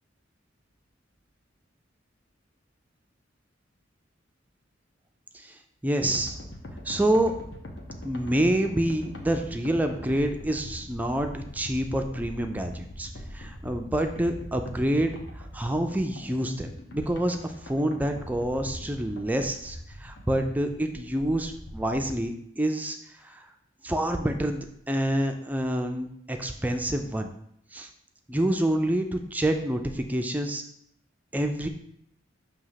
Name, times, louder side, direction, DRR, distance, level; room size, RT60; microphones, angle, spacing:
voice 1, 5.3-6.4 6.8-7.3 8.0-23.5 23.8-27.3 27.7-27.9 28.3-30.6 31.3-31.7, right 1 dB, 10° right, 5 dB, 0.3 m, -27 dB
sound 1, 6.1-22.2, left 1 dB, 65° left, 1.0 m, -42 dB
6.1 x 2.8 x 5.6 m, 0.73 s
head